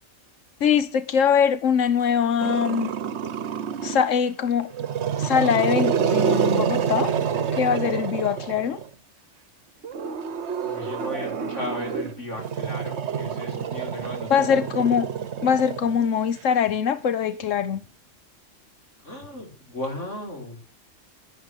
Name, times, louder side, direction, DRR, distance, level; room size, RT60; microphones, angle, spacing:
voice 1, 0.6-2.9 3.8-4.7 5.2-7.2 7.5-8.8 14.3-15.1 15.4-17.8, left 7 dB, 90° left, 1.3 m, -22 dB
Growling, 2.4-4.2 4.7-8.9 9.8-16.4, right 7 dB, 65° right, 1.1 m, -27 dB
voice 2, 10.6-14.9 19.0-20.6, left 1 dB, 75° left, 5.5 m, -35 dB
11.5 x 10.5 x 8.1 m
omnidirectional pair, 1.3 m